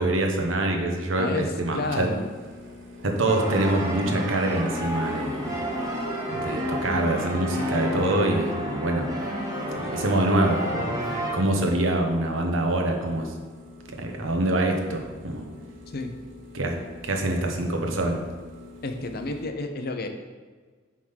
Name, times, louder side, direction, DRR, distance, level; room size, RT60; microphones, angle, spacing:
voice 1, 0.0-2.1 3.0-5.5 6.3-9.1 9.8-11.1 11.3-13.3 14.0-15.5 16.5-16.7 17.0-18.2, right 1 dB, 85° right, 2 dB, 1.0 m, -25 dB
voice 2, 1.7-2.2 15.9-16.1 18.8-20.1, left 2 dB, 55° left, 6 dB, 0.7 m, -30 dB
sound 1, 1.7-19.5, left 2 dB, 70° right, 1.1 m, -47 dB
sound 2, 3.2-11.3, equal, 15° right, 1.3 m, -30 dB
sound 3, 5.3-10.3, right 2 dB, 5° left, 2.1 m, -43 dB
7.6 x 3.7 x 5.6 m, 1.5 s
head